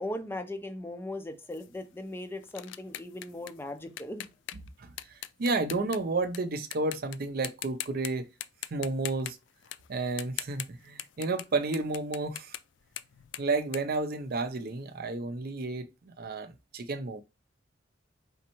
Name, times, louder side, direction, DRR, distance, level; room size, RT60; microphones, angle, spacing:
voice 1, 0.0-4.3, left 1 dB, 10° left, 0.5 m, -38 dB
sound 1, 1.5-6.4 6.7-7.2 7.4-8.1 8.4-14.7, left 13 dB, 70° left, 0.3 m, -41 dB
voice 2, 4.8-8.3 8.7-9.4 9.9-12.6 13.4-17.2, right 3 dB, 55° right, 0.5 m, -32 dB
4.2 x 3.5 x 3.0 m
head